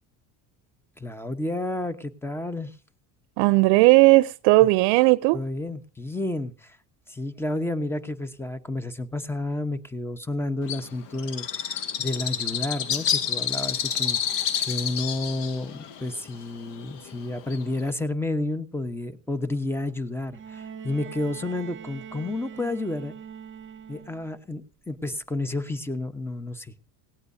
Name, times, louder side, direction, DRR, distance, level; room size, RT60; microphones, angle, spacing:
voice 1, 1.0-2.7 5.3-6.8 7.1-23.1 23.9-26.8, left 2 dB, 5° left, 0.9 m, -31 dB
voice 2, 3.4-5.4, right 21 dB, 85° right, 0.6 m, -17 dB
Bird, 10.7-17.9, left 8 dB, 70° left, 1.4 m, -29 dB
Bowed string instrument, 20.3-24.4 25.6-25.7, right 7 dB, 25° right, 1.3 m, -42 dB
17.5 x 17.5 x 2.7 m
cardioid pair, 120°, 43 cm